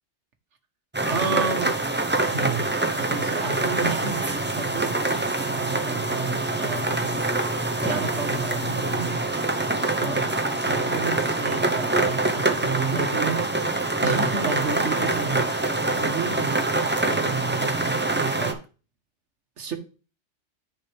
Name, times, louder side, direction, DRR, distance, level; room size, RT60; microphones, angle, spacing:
sound 1, 0.9-18.5, right 2 dB, 10° right, 0.7 m, -25 dB
voice 1, 1.0-1.7 2.2-2.7 3.0-7.2 7.8-9.1 10.0-10.4 10.6-13.4 14.0-18.6 19.6-19.8, right 5 dB, 85° right, 1.4 m, -31 dB
9.8 x 5.4 x 3.4 m
omnidirectional pair, 1.2 m